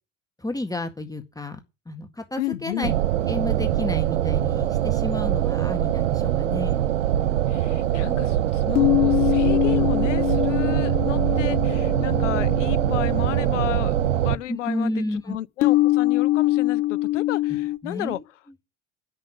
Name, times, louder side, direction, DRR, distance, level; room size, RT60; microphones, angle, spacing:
voice 1, 0.4-1.6 1.9-2.9 3.3-6.9 14.5-15.4 17.8-18.2, left 2 dB, 10° left, 1.9 m, -31 dB
voice 2, 2.4-2.9 7.5-18.2, left 14 dB, 80° left, 0.7 m, -33 dB
sound 1, 2.8-14.4, right 12 dB, 85° right, 0.6 m, -23 dB
sound 2, 7.2-7.3 8.7-14.2 15.6-17.8, left 18 dB, 60° left, 1.2 m, -23 dB
10.5 x 6.8 x 8.5 m
figure-of-eight pair, 60°, 36 cm